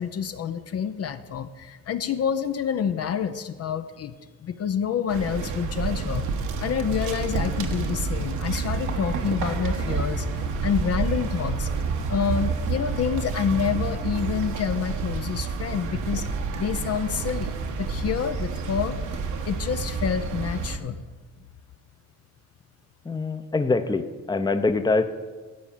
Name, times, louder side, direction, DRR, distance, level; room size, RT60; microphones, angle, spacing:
voice 1, 0.0-4.1 4.4-6.2 6.6-11.7 12.1-16.3 16.5-19.0 19.4-21.0, left 7 dB, 55° left, 10 dB, 0.7 m, -28 dB
sound 1, 5.1-20.8, right 4 dB, 80° right, 1.2 m, -29 dB
voice 2, 23.0-25.0, left 3 dB, 15° left, 10 dB, 0.7 m, -24 dB
13.5 x 4.9 x 7.3 m, 1.3 s
cardioid pair, 90°, 30 cm